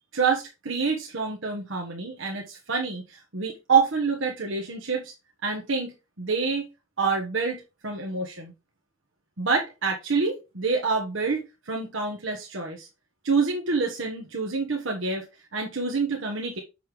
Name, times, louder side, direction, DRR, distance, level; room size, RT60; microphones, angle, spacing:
voice 1, 0.1-5.1 5.4-6.7 7.0-8.5 9.4-12.9 13.2-15.3 15.5-16.6, right 4 dB, 70° right, 0 dB, 1.3 m, -27 dB
6.6 x 5.6 x 3.3 m, 0.26 s
head